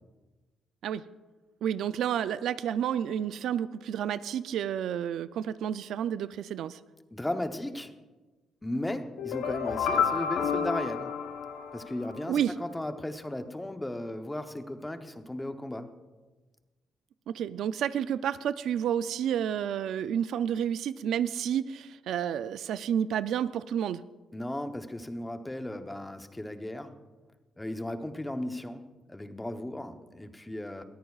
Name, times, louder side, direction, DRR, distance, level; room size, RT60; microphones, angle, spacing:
voice 1, 1.6-6.8 12.3-12.6 17.3-24.0, right 9 dB, 75° right, 15 dB, 0.3 m, -30 dB
voice 2, 7.1-7.9 8.6-11.1 11.7-15.9 24.3-26.9 27.6-30.8, left 1 dB, 10° left, 7 dB, 0.8 m, -36 dB
sound 1, 9.2-12.2, left 7 dB, 90° left, 0.8 m, -30 dB
20.5 x 14.0 x 2.4 m, 1.2 s
cardioid pair, 125°, 0 cm